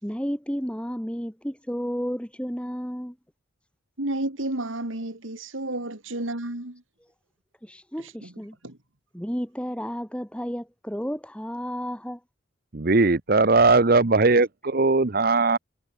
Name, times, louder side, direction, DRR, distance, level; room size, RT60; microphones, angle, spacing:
voice 1, 0.0-3.2 7.6-8.6 9.1-12.2, equal, 5° left, 5.9 m, -32 dB
voice 2, 4.0-6.8 8.2-8.3 8.6-8.8, right 1 dB, 85° right, 3.2 m, -31 dB
voice 3, 12.7-15.6, right 3 dB, 50° right, 0.9 m, -19 dB
head